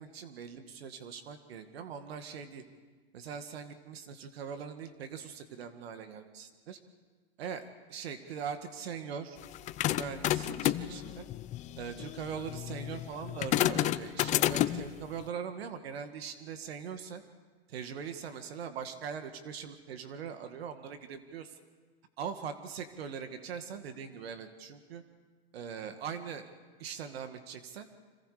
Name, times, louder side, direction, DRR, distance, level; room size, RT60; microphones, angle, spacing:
voice 1, 0.0-2.6 3.1-6.8 7.4-7.6 7.9-9.4 9.9-11.3 11.8-17.2 17.7-21.6 22.2-25.0 25.5-26.5 26.8-27.9, right 7 dB, 70° right, 8 dB, 2.0 m, -41 dB
sound 1, 9.4-14.9, left 13 dB, 25° left, 0.6 m, -31 dB
28.5 x 26.0 x 5.0 m, 1.4 s
hypercardioid pair, 135°, 32 cm